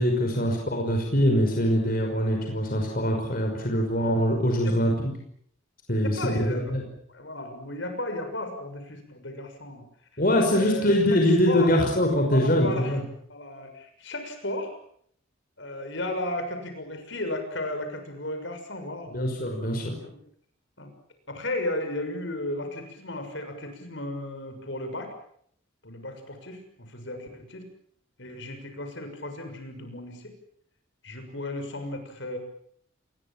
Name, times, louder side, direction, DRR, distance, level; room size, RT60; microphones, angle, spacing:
voice 1, 0.0-5.1 5.9-6.8 10.2-13.0 19.1-19.9, equal, 45° left, 2 dB, 5.7 m, -23 dB
voice 2, 4.6-5.1 6.0-6.7 7.1-9.9 10.1-10.2 10.5-10.9 11.5-11.7 12.3-13.0 13.3-14.8 15.6-19.2 20.0-20.1 20.8-20.9 21.3-25.1 25.8-27.6 28.2-30.3 31.0-32.4, left 1 dB, 60° left, 6 dB, 6.6 m, -34 dB
29.0 x 22.0 x 7.5 m, 0.66 s
head